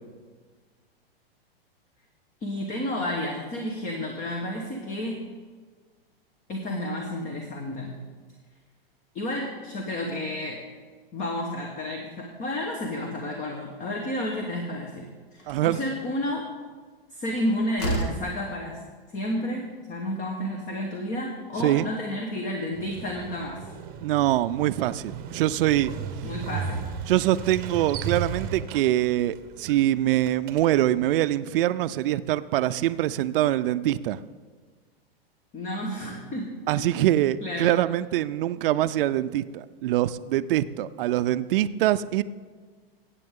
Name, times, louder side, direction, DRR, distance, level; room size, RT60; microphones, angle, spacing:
voice 1, 2.4-5.2 6.5-7.9 9.1-10.6 11.1-16.5 17.1-18.8 19.1-23.6 26.2-26.8 35.5-37.1 37.4-37.7, left 1 dB, 25° left, 2 dB, 1.2 m, -31 dB
Slam, 15.4-15.7 17.3-17.4 17.8-18.3, right 1 dB, 55° left, 2.1 m, -29 dB
voice 2, 15.5-15.8 21.6-21.9 24.0-25.9 27.1-34.2 36.7-42.2, right 14 dB, 65° right, 13 dB, 0.5 m, -24 dB
Motorcycle, 22.7-31.1, right 6 dB, 30° right, 0.9 m, -36 dB
14.5 x 8.4 x 3.7 m, 1.5 s
hypercardioid pair, 135°, 30 cm